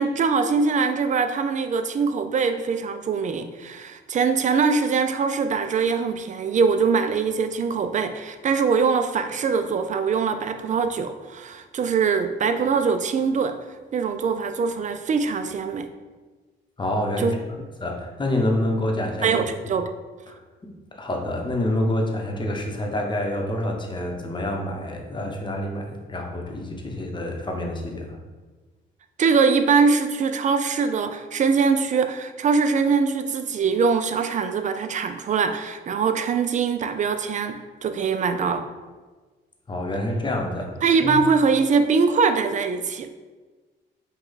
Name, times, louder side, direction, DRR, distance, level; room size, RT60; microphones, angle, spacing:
voice 1, 0.0-13.6 13.9-15.9 17.2-17.3 19.2-19.8 29.2-38.7 40.8-43.1, right 5 dB, 40° right, 9 dB, 0.4 m, -22 dB
voice 2, 16.8-19.4 20.3-28.2 39.7-41.2, left 1 dB, 25° left, 1 dB, 0.9 m, -27 dB
5.3 x 2.3 x 3.9 m, 1.3 s
cardioid pair, 90°, 20 cm